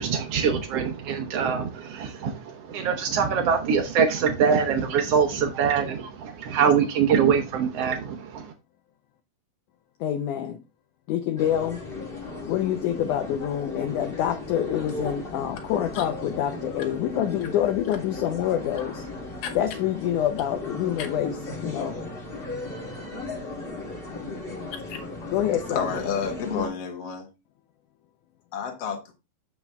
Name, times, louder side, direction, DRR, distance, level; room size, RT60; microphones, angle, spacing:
voice 1, 0.0-8.5, right 6 dB, 80° right, 1.3 m, -24 dB
voice 2, 10.0-10.6 11.1-11.8 12.5-19.0 19.6-21.4 21.6-22.0 25.3-25.9, left 10 dB, 75° left, 2.0 m, -26 dB
sound 1, 11.4-26.7, left 2 dB, 30° left, 1.1 m, -36 dB
voice 3, 25.7-27.3 28.5-29.1, left 6 dB, 55° left, 2.2 m, -30 dB
7.6 x 6.0 x 3.4 m
omnidirectional pair, 4.1 m